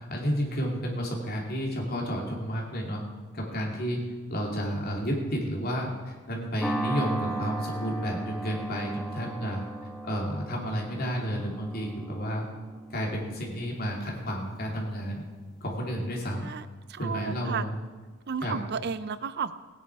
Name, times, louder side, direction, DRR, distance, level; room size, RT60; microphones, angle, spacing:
voice 1, 0.1-3.0 3.3-4.0 4.3-9.6 10.0-12.5 12.9-15.2 15.6-16.5 17.0-17.8 18.4-18.6, equal, 50° left, -1 dB, 2.9 m, -31 dB
sound 1, 6.6-15.1, right 2 dB, ahead, 1.0 m, -37 dB
voice 2, 16.9-17.6 18.3-19.5, right 6 dB, 55° right, 14 dB, 0.5 m, -32 dB
17.5 x 10.0 x 4.7 m, 1.3 s
head